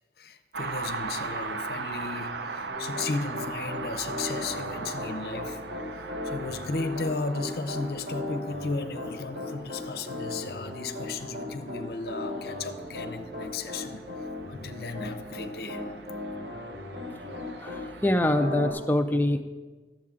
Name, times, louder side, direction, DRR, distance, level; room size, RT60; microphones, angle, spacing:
voice 1, 0.2-5.6 5.9-14.0 14.5-15.8, left 3 dB, 60° left, 8 dB, 0.6 m, -35 dB
sound 1, 0.5-18.2, right 4 dB, 75° right, 0.6 m, -40 dB
Piano, 2.7-17.9 18.3-18.7, left 1 dB, 60° right, 2.9 m, -36 dB
voice 2, 17.2-19.4, left 1 dB, 10° left, 7 dB, 0.4 m, -26 dB
12.0 x 7.5 x 3.7 m, 1.3 s
head